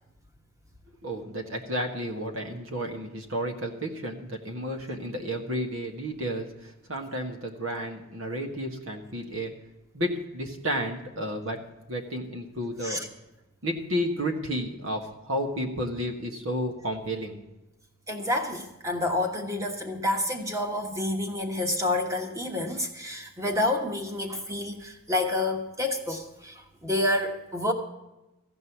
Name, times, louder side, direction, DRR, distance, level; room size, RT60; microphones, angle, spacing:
voice 1, 1.0-9.5 9.9-11.6 11.9-13.0 13.6-17.4, equal, 75° right, 3 dB, 1.8 m, -32 dB
voice 2, 18.1-27.7, left 1 dB, 15° right, 4 dB, 1.3 m, -29 dB
15.0 x 5.4 x 9.4 m, 1.0 s
head